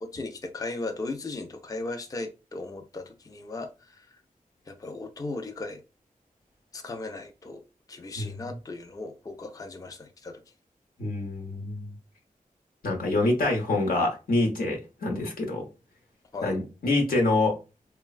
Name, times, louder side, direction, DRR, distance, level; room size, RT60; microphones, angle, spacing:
voice 1, 0.0-3.7 4.0-4.1 4.7-5.8 6.7-7.6 7.9-10.4 16.3-16.5, left 3 dB, 25° left, 0.4 m, -36 dB
voice 2, 11.0-11.9 12.8-15.7 16.4-17.6, left 2 dB, 85° left, 0.9 m, -26 dB
3.1 x 2.2 x 2.3 m
wide cardioid pair, 65°, 15 cm